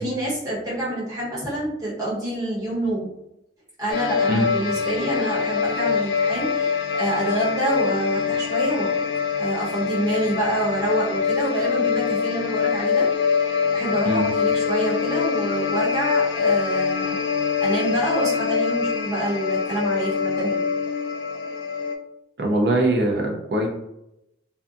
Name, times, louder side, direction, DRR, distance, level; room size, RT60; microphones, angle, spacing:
voice 1, 0.0-3.1 3.8-9.0 9.4-13.1 13.6-17.2 17.6-20.6, right 1 dB, 20° right, -8 dB, 1.0 m, -27 dB
sound 1, 3.9-22.0, left 6 dB, 80° left, 0.3 m, -24 dB
voice 2, 22.4-23.7, right 1 dB, 60° right, 1 dB, 0.5 m, -21 dB
2.6 x 2.3 x 2.4 m, 0.84 s
head